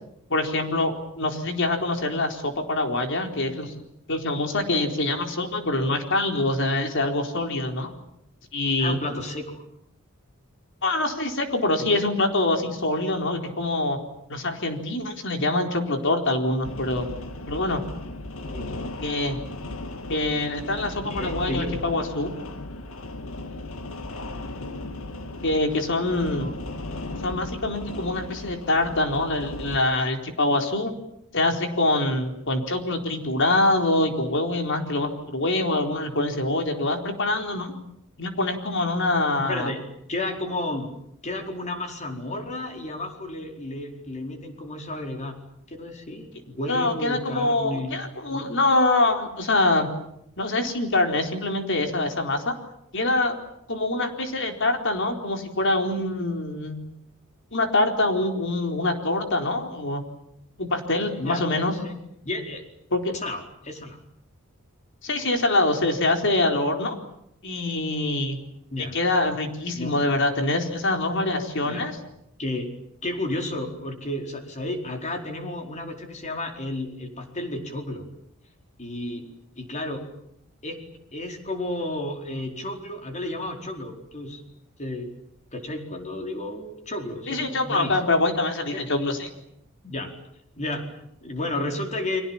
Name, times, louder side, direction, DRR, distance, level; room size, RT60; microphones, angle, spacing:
voice 1, 0.3-3.7 4.1-7.9 8.5-9.0 10.8-14.0 14.3-17.1 17.5-17.8 19.0-19.4 20.1-22.3 25.4-26.5 27.2-30.9 31.3-37.7 38.2-39.7 46.7-49.9 50.4-52.5 52.9-53.4 53.7-56.8 57.5-60.0 60.6-61.7 62.9-63.1 65.0-67.0 67.4-68.4 68.8-72.0 87.3-89.3, left 2 dB, 60° left, 4 dB, 4.3 m, -24 dB
voice 2, 8.8-9.6 11.9-12.0 18.4-18.8 21.0-21.8 24.1-24.4 26.3-26.6 39.3-39.8 40.1-40.9 41.2-45.3 45.7-48.0 48.3-48.5 61.2-61.4 61.8-61.9 62.2-62.6 63.2-64.0 68.7-68.9 69.7-69.9 71.6-71.8 72.4-72.7 73.0-78.0 78.8-79.2 79.6-80.0 80.6-80.8 81.1-84.4 84.8-85.1 85.5-88.0 88.7-88.8 89.8-90.1 90.6-92.2, left 1 dB, 35° left, 4 dB, 4.6 m, -32 dB
sound 1, 16.6-29.8, left 2 dB, 75° left, 2.1 m, -36 dB
30.0 x 24.5 x 7.4 m, 0.77 s
head